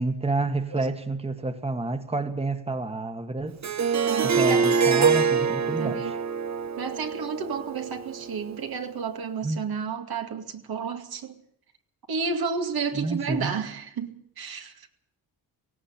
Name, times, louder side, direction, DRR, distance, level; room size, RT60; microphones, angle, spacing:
voice 1, 0.0-3.6 4.2-6.2 9.4-9.6 12.9-13.6, right 3 dB, 15° right, 1.7 m, -29 dB
Harp, 3.6-8.6, right 5 dB, 45° right, 1.2 m, -25 dB
voice 2, 4.0-4.7 5.0-5.1 5.6-6.1 6.8-11.3 12.1-14.7, right 5 dB, 65° right, 2.3 m, -31 dB
18.0 x 16.5 x 8.8 m
cardioid pair, 85°, 40 cm